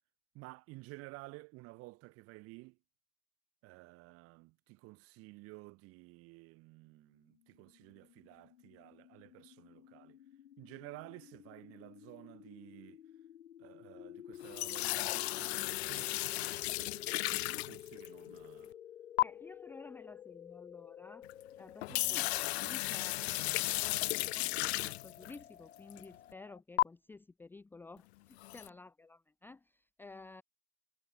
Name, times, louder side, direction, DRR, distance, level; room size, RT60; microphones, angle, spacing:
voice 1, 0.3-2.8 3.6-10.2 10.6-13.0 13.6-18.7 21.9-22.3, right 23 dB, 35° right, 3.2 m, -53 dB
sound 1, 7.4-26.6, left 10 dB, 90° left, 7.8 m, -53 dB
sound 2, 14.4-18.3 19.2-19.3 21.2-21.3 21.7-25.4 25.9-26.0 26.8-26.9 28.4-28.7, left 18 dB, 55° left, 0.8 m, -34 dB
voice 2, 19.2-21.3 21.6-22.3 22.6-30.4, left 3 dB, 5° left, 0.9 m, -53 dB
supercardioid pair, 150°, 39 cm